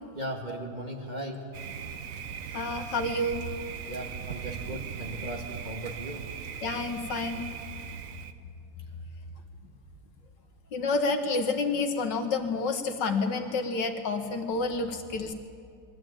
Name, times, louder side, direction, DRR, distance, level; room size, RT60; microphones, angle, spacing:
voice 1, 0.2-1.5 3.8-6.3, right 1 dB, 25° right, 0 dB, 1.8 m, -37 dB
Thunder, 1.5-8.3, right 8 dB, 55° right, 1.0 m, -39 dB
voice 2, 2.5-3.4 6.6-7.5 10.7-15.3, left 3 dB, 70° left, 5 dB, 1.9 m, -29 dB
22.0 x 14.0 x 8.8 m, 2.4 s
omnidirectional pair, 2.0 m